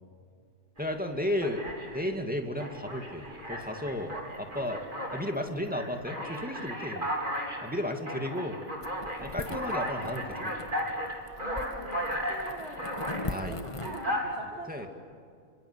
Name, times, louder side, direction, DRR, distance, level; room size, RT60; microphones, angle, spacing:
voice 1, 0.8-1.6 1.9-4.8 5.1-7.1 7.6-8.6 9.2-10.5 13.3-13.5 14.7-14.9, left 1 dB, 5° right, 3 dB, 2.3 m, -33 dB
Alarm, 0.8-0.9 1.4-2.1 2.6-5.3 5.7-13.3 13.8-14.2, equal, 35° right, 4.4 m, -35 dB
sound 1, 8.8-14.1, left 2 dB, 25° left, 1.2 m, -41 dB
voice 2, 11.4-14.9, right 2 dB, 50° right, 2 dB, 2.3 m, -45 dB
27.0 x 26.5 x 8.2 m, 2.3 s
omnidirectional pair, 1.5 m